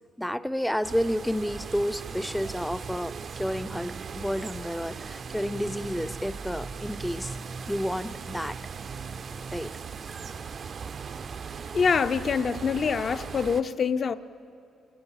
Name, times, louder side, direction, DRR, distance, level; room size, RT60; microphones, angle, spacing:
voice 1, 0.2-7.4 7.7-8.6 9.5-9.8, equal, ahead, 0.5 m, -30 dB
sound 1, 0.8-13.6, right 6 dB, 40° right, 0.6 m, -38 dB
voice 2, 11.7-14.1, left 6 dB, 40° left, 0.7 m, -25 dB
28.0 x 18.0 x 7.3 m
cardioid pair, 135°, 0 cm